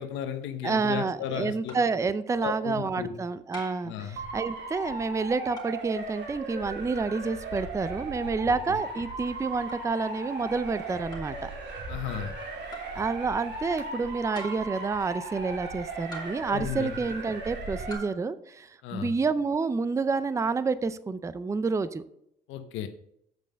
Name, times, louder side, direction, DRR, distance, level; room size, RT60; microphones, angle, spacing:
voice 1, 0.0-1.7 2.4-3.1 3.8-4.2 8.7-8.8 11.9-12.3 16.5-16.9 18.8-19.1 22.5-22.9, left 9 dB, 85° left, 8 dB, 0.8 m, -34 dB
voice 2, 0.6-11.5 12.9-22.0, right 4 dB, 15° right, 15 dB, 0.4 m, -29 dB
sound 1, 1.7-2.0 3.5-3.9 5.6-5.8 7.5-7.7 9.7-9.9 11.1-11.4 12.7-13.0 14.3-14.8 16.1-16.6 17.9-18.2, left 1 dB, 20° left, 2.9 m, -45 dB
Motor vehicle (road) / Siren, 4.2-17.9, right 2 dB, 65° right, 2.5 m, -37 dB
7.8 x 5.3 x 6.2 m, 0.75 s
cardioid pair, 95°, 19 cm